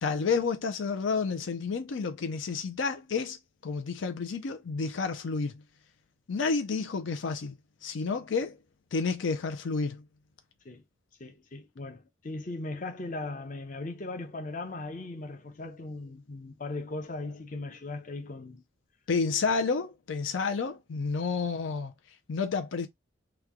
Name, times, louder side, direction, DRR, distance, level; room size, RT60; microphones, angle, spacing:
voice 1, 0.0-3.4 3.6-5.5 6.3-7.5 7.8-8.6 8.9-10.0 19.1-21.9 22.3-22.9, left 4 dB, 80° left, 0.5 m, -30 dB
voice 2, 11.2-18.6, left 2 dB, 45° left, 0.7 m, -38 dB
3.0 x 2.3 x 3.6 m
head